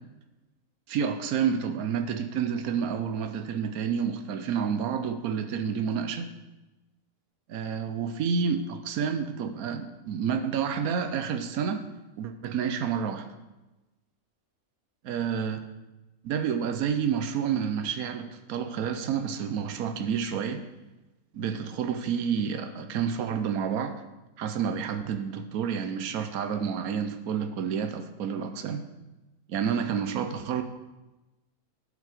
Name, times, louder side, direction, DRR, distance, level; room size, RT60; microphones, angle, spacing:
voice 1, 0.9-6.3 7.5-11.8 12.2-13.3 15.0-15.6 16.2-20.6 21.3-23.9 24.4-28.8 29.5-30.6, right 7 dB, 90° right, 8 dB, 1.2 m, -29 dB
11.0 x 5.6 x 4.9 m, 1.1 s
omnidirectional pair, 1.5 m